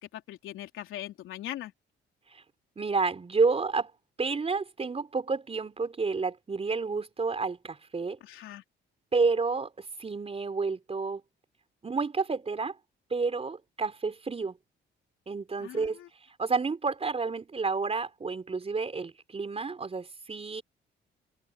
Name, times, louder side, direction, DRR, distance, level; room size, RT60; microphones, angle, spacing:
voice 1, 0.1-1.7 8.2-8.6 15.6-16.1, left 13 dB, 85° left, 3.8 m, -40 dB
voice 2, 2.8-3.9 4.2-8.2 9.1-11.2 11.8-12.7 13.1-14.6 15.3-16.0 16.4-20.6, right 4 dB, 30° right, 4.3 m, -30 dB
cardioid pair, 90°, 20 cm